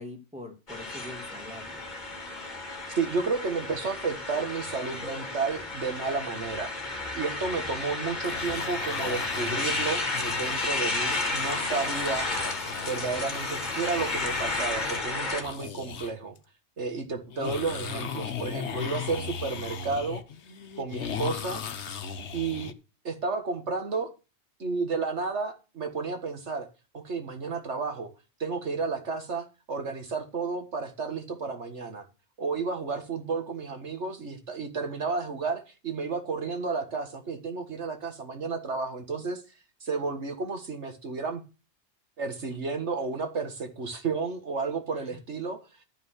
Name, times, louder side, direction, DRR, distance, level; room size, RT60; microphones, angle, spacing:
voice 1, 0.0-1.8 22.5-22.7 44.9-45.2, left 1 dB, 5° right, 2.4 m, -44 dB
sound 1, 0.7-15.4, left 2 dB, 40° left, 2.0 m, -32 dB
voice 2, 3.0-6.7 7.1-12.3 12.8-16.4 16.8-20.2 20.8-21.6 22.3-22.7 23.0-24.1 24.6-26.7 26.9-28.1 28.4-32.1 32.4-39.4 39.8-41.4 42.2-45.6, right 4 dB, 75° right, 1.9 m, -32 dB
sound 2, 8.2-16.1 16.4-16.5 17.3-22.7, left 7 dB, 70° left, 1.2 m, -37 dB
12.0 x 5.7 x 6.5 m
omnidirectional pair, 1.2 m